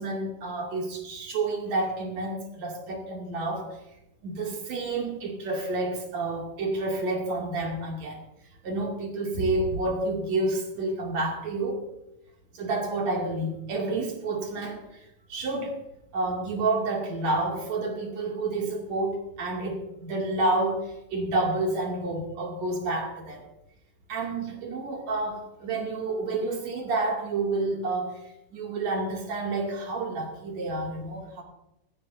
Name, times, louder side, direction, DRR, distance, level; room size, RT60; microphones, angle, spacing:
voice 1, 0.0-3.8 4.2-8.2 8.6-11.8 12.5-15.0 15.3-15.8 16.1-23.4 24.1-28.2 28.5-31.4, right 2 dB, 65° right, 0 dB, 3.8 m, -29 dB
18.5 x 15.5 x 2.7 m, 0.88 s
omnidirectional pair, 3.3 m